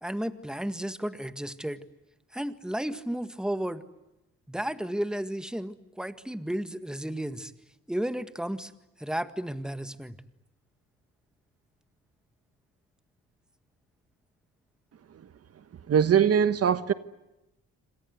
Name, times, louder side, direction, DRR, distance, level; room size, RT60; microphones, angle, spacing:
voice 1, 0.0-1.8 2.3-3.8 4.5-7.5 7.9-8.7 9.0-10.2, right 1 dB, ahead, 1.8 m, -33 dB
voice 2, 15.9-16.9, right 8 dB, 55° right, 1.3 m, -21 dB
27.5 x 26.0 x 8.0 m
cardioid pair, 90°, 30 cm